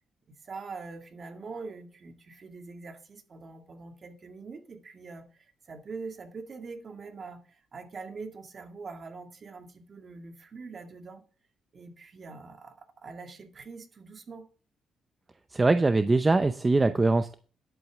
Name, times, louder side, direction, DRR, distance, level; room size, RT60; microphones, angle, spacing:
voice 1, 0.4-11.2 11.7-14.5, right 4 dB, 45° right, 2.1 m, -43 dB
voice 2, 15.5-17.3, right 3 dB, 20° right, 0.7 m, -22 dB
11.0 x 8.1 x 3.5 m
cardioid pair, 90°, 0 cm